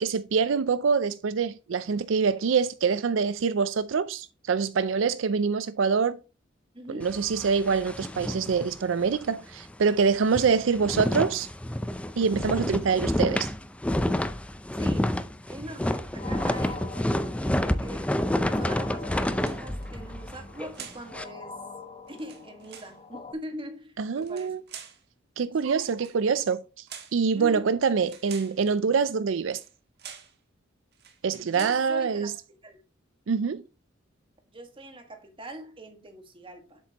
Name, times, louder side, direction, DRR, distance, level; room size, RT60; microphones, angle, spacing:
voice 1, 0.0-6.2 6.9-11.5 12.2-13.5 24.0-24.6 25.4-26.6 27.1-29.6 31.2-32.3 33.3-33.6, right 5 dB, 75° right, 0.4 m, -25 dB
voice 2, 6.7-7.2 14.7-15.1 15.5-21.6 22.1-24.7 25.6-25.9 27.3-27.8 31.4-32.3 32.6-32.8 34.5-36.8, right 1 dB, 30° right, 1.7 m, -42 dB
sound 1, 7.0-9.3 9.6-9.7 10.1-21.2, left 1 dB, 5° left, 0.5 m, -29 dB
sound 2, 16.2-23.3, left 4 dB, 35° left, 1.0 m, -44 dB
sound 3, 19.3-19.9 20.7-21.1 22.1-23.0 24.2-25.0 25.9-26.2 26.9-27.2 28.0-28.6 29.5-29.7 30.0-30.4 30.9-31.2 31.5-31.9, right 8 dB, 60° right, 1.3 m, -45 dB
7.7 x 7.3 x 2.9 m
head